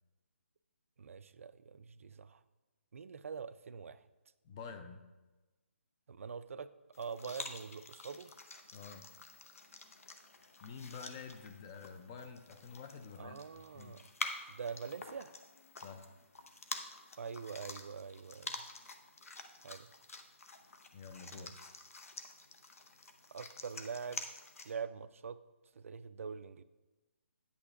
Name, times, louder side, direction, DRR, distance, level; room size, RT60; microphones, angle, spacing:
voice 1, 1.0-2.4 2.9-4.0 6.1-6.7 6.9-8.3 13.2-14.0 14.5-15.3 17.2-18.6 19.6-19.9 21.3-21.5 23.3-24.2 24.6-25.4 25.7-26.6, right 6 dB, 75° right, 13 dB, 0.4 m, -44 dB
voice 2, 4.4-5.0 8.7-9.1 10.6-13.4 13.7-14.0 15.8-16.1 20.9-21.5, left 5 dB, 20° left, 8 dB, 0.4 m, -48 dB
sound 1, 6.9-24.7, left 3 dB, 90° left, 0.8 m, -48 dB
9.5 x 8.4 x 2.4 m, 1.2 s
hypercardioid pair, 165°, 7 cm